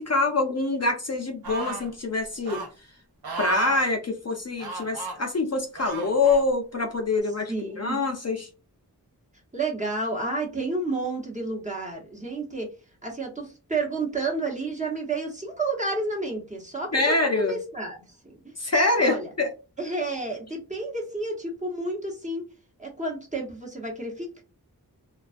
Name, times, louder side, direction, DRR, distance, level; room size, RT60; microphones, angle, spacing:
voice 1, 0.0-2.6 3.4-8.5 16.9-17.5 18.6-19.5, left 3 dB, 45° left, 3 dB, 0.5 m, -25 dB
sound 1, 1.4-1.9 2.5-2.7 3.2-3.8 4.6-5.2 5.8-6.4 7.2-7.3, right 4 dB, 80° right, 0.6 m, -34 dB
voice 2, 7.5-8.0 9.5-12.7 13.0-18.0 18.2-18.5 19.0-19.3 19.8-22.4 22.8-24.4, right 2 dB, 20° right, -1 dB, 0.9 m, -30 dB
2.3 x 2.2 x 2.4 m, 0.32 s
wide cardioid pair, 45°, 37 cm